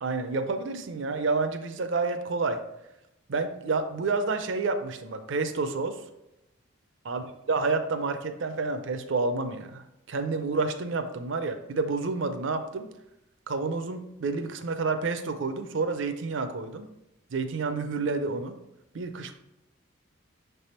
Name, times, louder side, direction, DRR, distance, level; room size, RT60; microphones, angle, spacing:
voice 1, 0.0-2.6 3.3-6.0 7.0-9.8 10.1-12.9 13.5-16.9 17.3-18.6 18.9-19.3, right 3 dB, 65° right, 7 dB, 0.5 m, -29 dB
6.5 x 3.4 x 4.3 m, 0.89 s
head